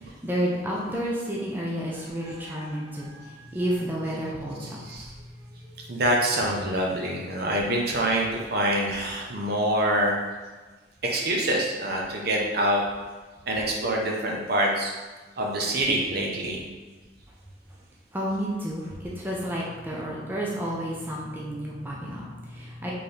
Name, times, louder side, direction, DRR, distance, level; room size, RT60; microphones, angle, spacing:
voice 1, 0.2-4.8 18.1-22.9, equal, 10° right, -5 dB, 0.6 m, -31 dB
voice 2, 4.6-5.1 5.9-10.2 11.0-12.8 13.5-14.9 15.4-16.6, right 1 dB, 55° right, -1 dB, 0.8 m, -25 dB
4.3 x 3.7 x 3.3 m, 1.3 s
head